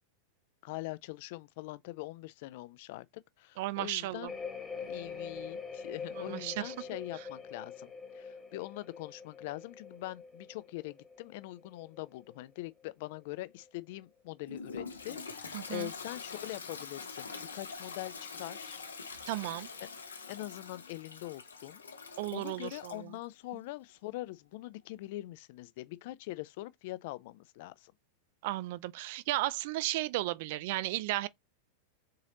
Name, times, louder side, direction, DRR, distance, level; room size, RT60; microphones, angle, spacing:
voice 1, 0.6-3.1 3.4-4.3 4.8-18.8 19.8-19.9 20.3-21.8 22.3-27.9, left 18 dB, 50° left, 0.4 m, -43 dB
voice 2, 3.6-4.3 6.2-6.7 15.5-15.9 19.3-19.7 22.2-23.1 28.4-31.3, right 17 dB, 50° right, 0.4 m, -34 dB
sound 1, 4.3-12.9 13.2-13.7, left 5 dB, 15° left, 1.0 m, -45 dB
Toilet flush, 14.5-23.0, left 5 dB, 70° left, 0.8 m, -45 dB
4.1 x 3.7 x 2.9 m
figure-of-eight pair, 90°, 0 cm